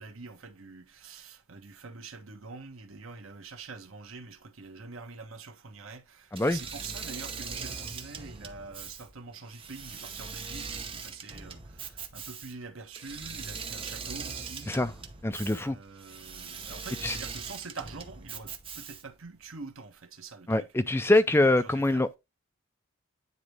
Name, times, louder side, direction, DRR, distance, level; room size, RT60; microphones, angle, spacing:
voice 1, 0.0-14.7 15.4-20.7 21.3-22.0, right 4 dB, 75° right, 1.2 m, -45 dB
Engine / Mechanisms, 6.3-19.2, right 5 dB, 25° right, 0.8 m, -41 dB
voice 2, 15.2-15.8 17.0-17.2 20.5-22.1, left 2 dB, 10° left, 0.4 m, -24 dB
9.7 x 4.0 x 3.3 m
head